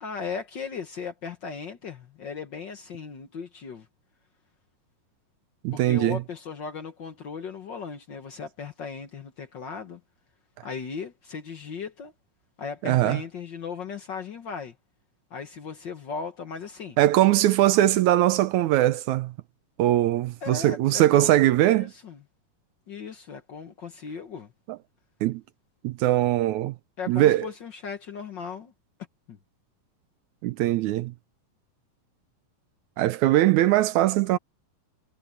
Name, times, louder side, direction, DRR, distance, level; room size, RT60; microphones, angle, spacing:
voice 1, 0.0-3.9 5.7-10.0 10.6-12.1 12.6-14.8 15.3-17.0 20.4-21.4 21.6-22.2 22.9-24.5 27.0-28.7 29.3-29.4, left 5 dB, 65° left, 1.1 m, -37 dB
voice 2, 5.6-6.2 12.8-13.2 17.0-19.3 19.8-21.9 25.2-25.4 25.8-26.8 27.1-27.5 30.4-31.1 33.0-34.4, right 14 dB, 75° right, 1.8 m, -21 dB
omnidirectional pair, 3.9 m